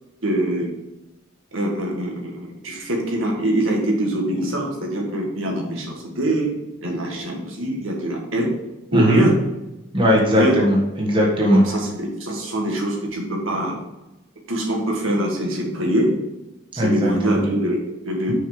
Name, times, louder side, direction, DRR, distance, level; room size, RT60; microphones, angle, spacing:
voice 1, 0.2-0.7 1.5-6.5 6.8-8.5 8.9-9.4 10.3-10.6 11.5-13.8 14.5-16.1 16.7-18.3, right 1 dB, 70° right, 0 dB, 1.8 m, -23 dB
voice 2, 8.9-9.2 9.9-11.6 16.8-17.4, equal, 25° right, -2 dB, 1.5 m, -18 dB
6.4 x 5.8 x 5.1 m, 0.99 s
head